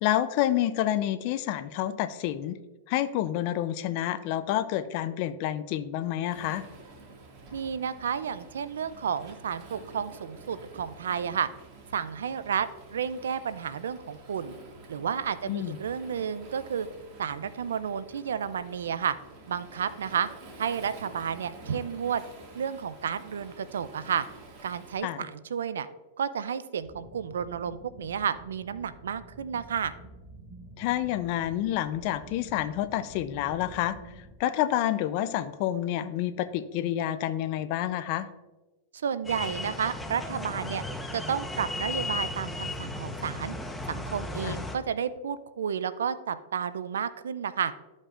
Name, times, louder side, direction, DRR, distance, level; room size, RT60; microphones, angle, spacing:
voice 1, 0.0-2.6 2.9-6.6 15.5-15.8 25.0-25.3 30.8-34.0 34.4-38.3 44.4-44.6, left 12 dB, 50° left, 12 dB, 0.5 m, -28 dB
Waves surf, 6.3-25.0, right 2 dB, 40° right, 2.0 m, -49 dB
voice 2, 7.5-11.5 11.9-14.5 14.9-16.9 17.2-19.2 19.5-20.3 20.6-22.2 22.5-24.3 24.6-25.9 26.2-29.9 38.9-40.8 41.1-43.5 43.9-47.7, right 7 dB, 90° right, 15 dB, 0.4 m, -31 dB
sound 1, 26.8-34.4, right 2 dB, 15° right, 1.9 m, -49 dB
sound 2, 39.2-44.8, left 2 dB, 5° left, 0.9 m, -35 dB
13.0 x 5.3 x 2.5 m, 1.2 s
hypercardioid pair, 125°, 0 cm